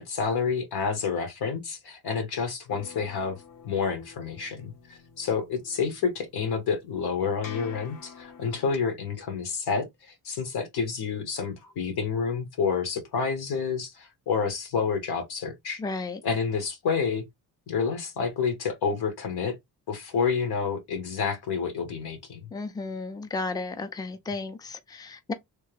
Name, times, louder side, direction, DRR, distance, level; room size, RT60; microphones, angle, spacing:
voice 1, 0.0-3.4 3.6-15.8 16.2-17.2 17.7-19.6 19.9-22.4, left 5 dB, 85° left, 1.3 m, -29 dB
sound 1, 2.7-8.8, left 6 dB, 60° left, 0.8 m, -48 dB
voice 2, 15.8-16.2 22.5-25.3, left 3 dB, 10° left, 0.5 m, -33 dB
3.3 x 2.2 x 3.2 m
cardioid pair, 100°, 37 cm